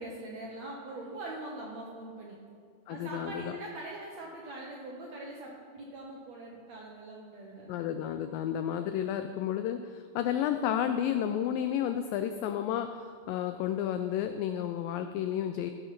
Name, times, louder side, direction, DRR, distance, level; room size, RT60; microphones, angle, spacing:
voice 1, 0.0-2.4 2.9-8.1, right 2 dB, 70° right, -2 dB, 1.7 m, -42 dB
voice 2, 2.9-3.6 7.7-15.7, left 10 dB, 90° left, 8 dB, 2.0 m, -31 dB
15.5 x 6.4 x 5.9 m, 2.2 s
omnidirectional pair, 4.5 m